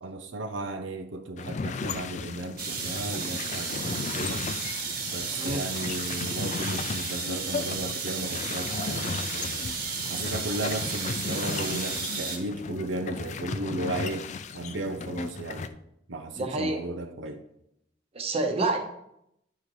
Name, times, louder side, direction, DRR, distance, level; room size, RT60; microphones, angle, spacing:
voice 1, 0.0-4.5 5.1-9.7 10.1-14.3 14.5-15.8 16.1-17.4, right 2 dB, 80° right, 0.7 m, -35 dB
sound 1, 1.4-15.7, left 4 dB, 40° left, 0.4 m, -35 dB
sound 2, 2.6-12.4, right 5 dB, 55° right, 1.4 m, -33 dB
voice 2, 16.4-16.8 18.1-18.8, right 2 dB, 30° right, 1.0 m, -27 dB
10.0 x 3.8 x 4.8 m
head